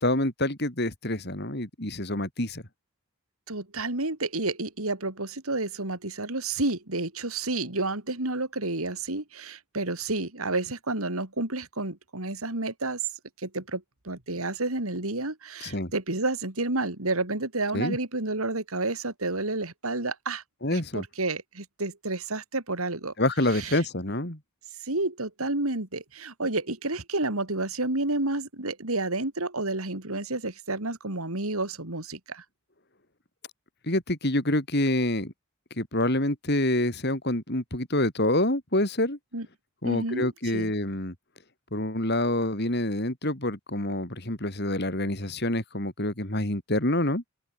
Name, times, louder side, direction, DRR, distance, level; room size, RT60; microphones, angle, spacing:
voice 1, 0.0-2.6 15.6-15.9 17.7-18.0 20.6-21.0 23.2-24.4 33.8-35.3 35.8-39.2 39.8-41.1 41.7-47.2, left 1 dB, 50° left, 4.1 m, -27 dB
voice 2, 3.5-13.0 13.4-20.4 20.7-23.1 23.5-23.8 24.8-32.4 39.3-39.5 39.8-40.7, right 2 dB, 80° right, 3.6 m, -30 dB
open air
head